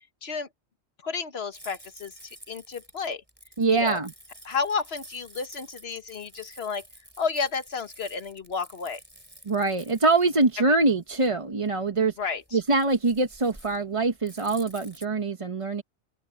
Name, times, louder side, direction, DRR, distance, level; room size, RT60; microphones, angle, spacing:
voice 1, 1.0-2.1 2.5-3.2 3.7-4.0 4.4-6.8 7.2-9.0 12.2-12.6, left 5 dB, 65° left, 1.7 m, -31 dB
sound 1, 1.5-15.1, right 1 dB, 10° right, 3.1 m, -50 dB
voice 2, 3.6-4.1 9.5-12.1 12.5-15.8, right 3 dB, 30° right, 1.0 m, -24 dB
open air
omnidirectional pair, 1.1 m